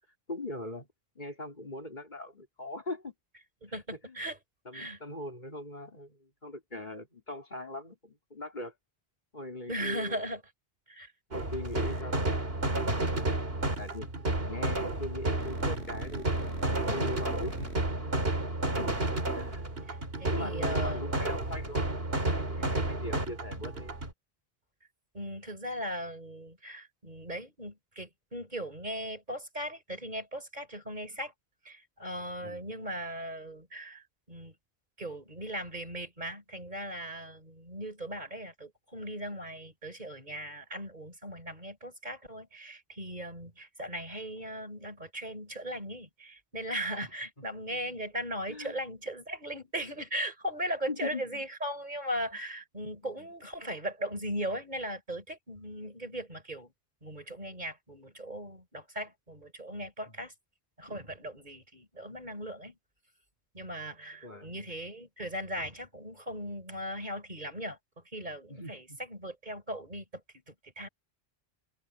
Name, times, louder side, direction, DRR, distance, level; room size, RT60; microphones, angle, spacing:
voice 1, 0.3-0.9 1.2-3.1 3.7-4.2 4.7-8.7 9.3-10.2 11.3-14.1 14.5-17.7 18.6-18.9 19.3-19.6 20.3-23.9 32.4-32.6 47.7-48.0 48.5-48.7 50.9-51.4 53.0-53.3 60.1-60.2 64.2-64.6 68.5-69.0, left 2 dB, 45° left, 3.9 m, -41 dB
voice 2, 3.6-4.4 4.7-5.0 9.7-10.4 10.9-11.1 19.9-21.1 22.6-22.8 25.1-31.3 31.6-34.5 35.0-56.7 57.0-60.3 60.8-62.7 63.5-67.8 68.1-70.0 70.5-70.9, equal, 45° right, 4.1 m, -38 dB
sound 1, 11.3-24.1, right 2 dB, 65° right, 3.3 m, -31 dB
sound 2, 11.7-12.0 13.7-14.0 14.8-17.8, right 1 dB, 85° right, 7.8 m, -44 dB
omnidirectional pair, 1.1 m